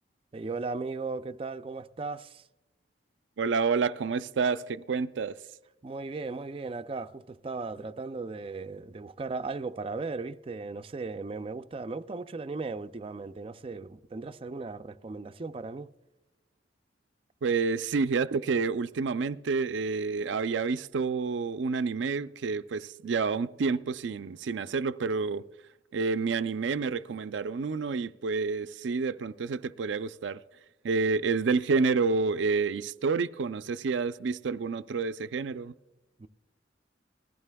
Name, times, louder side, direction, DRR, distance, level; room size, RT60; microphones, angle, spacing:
voice 1, 0.3-2.4 5.8-15.9 36.2-36.3, right 3 dB, 30° right, 0.4 m, -37 dB
voice 2, 3.4-5.4 17.4-25.4 25.9-30.4 30.8-35.7, right 4 dB, 90° right, 0.4 m, -29 dB
20.0 x 14.5 x 2.2 m
head